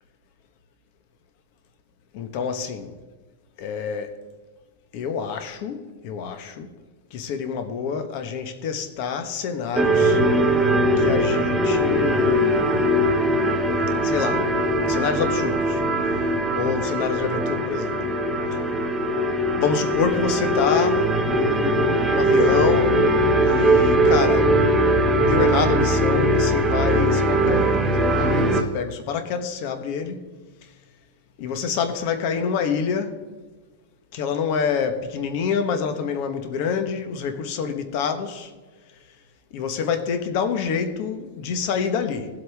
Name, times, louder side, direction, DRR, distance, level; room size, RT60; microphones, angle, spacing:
voice 1, 2.1-2.9 3.6-4.1 4.9-6.7 7.1-10.2 11.0-13.1 14.0-14.5 14.9-15.8 16.5-18.0 19.6-23.1 23.4-30.3 31.4-33.1 34.1-38.5 39.5-42.3, left 6 dB, 35° left, 1.2 m, -27 dB
sound 1, 9.8-28.6, right 1 dB, 10° right, 0.8 m, -20 dB
17.0 x 8.0 x 3.5 m
supercardioid pair, 175°, 0 cm